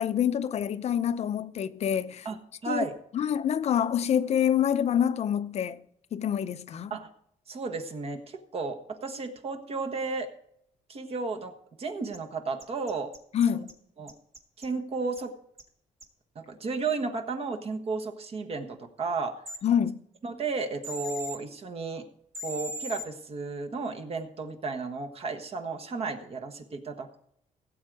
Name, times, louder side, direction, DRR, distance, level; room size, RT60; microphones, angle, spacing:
voice 1, 0.0-2.3 2.7-2.9 3.1-5.8 6.1-6.9 13.3-13.7 19.6-20.0, left 9 dB, 50° left, 0.6 m, -26 dB
voice 2, 2.2-2.9 6.9-7.1 7.5-10.3 10.9-11.5 11.8-13.1 13.5-13.6 14.0-14.1 14.6-15.3 16.3-19.4 20.2-22.1 22.4-27.1, right 4 dB, 45° right, 1.3 m, -33 dB
sound 1, 12.1-12.2 12.6-13.7 14.1-14.7 15.1-15.2 15.6-15.7 16.0-16.1 19.5-19.6 20.8-21.4 22.3-23.0, left 1 dB, 20° right, 1.6 m, -38 dB
16.5 x 7.9 x 4.8 m
cardioid pair, 135°, 14 cm